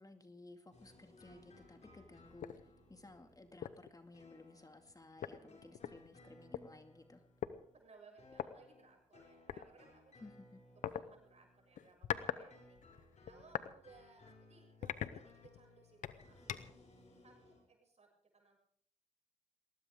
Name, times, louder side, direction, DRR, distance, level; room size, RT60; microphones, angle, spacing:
voice 1, 0.0-7.2 10.2-10.6, left 2 dB, 30° left, 6 dB, 2.3 m, -57 dB
sound 1, 0.7-11.9 12.1-17.6, left 2 dB, 60° left, 6.7 m, -63 dB
sound 2, 2.4-2.6 3.1-3.2 3.6-3.9 4.9-5.0 5.2-6.6 7.4-7.6 8.3-8.5 9.5-9.7 10.8-11.0 11.8-12.4 12.8-13.7 14.2-14.3 14.8-15.6 16.0-16.8, left 10 dB, 85° left, 0.8 m, -42 dB
voice 2, 5.2-5.6 7.7-10.2 10.8-12.8 13.3-16.7 17.2-18.6, right 4 dB, 60° right, 1 dB, 6.9 m, -63 dB
20.0 x 19.0 x 3.7 m, 0.63 s
supercardioid pair, 40°, 13 cm